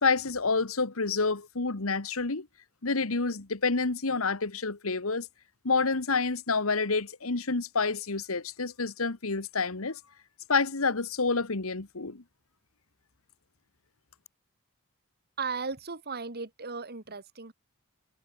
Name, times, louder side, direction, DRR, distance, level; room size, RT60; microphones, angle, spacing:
voice 1, 0.0-2.5 2.8-5.3 5.6-10.0 10.5-12.2, left 4 dB, 75° left, 1.6 m, -28 dB
voice 2, 15.4-17.5, right 4 dB, 50° right, 2.6 m, -36 dB
head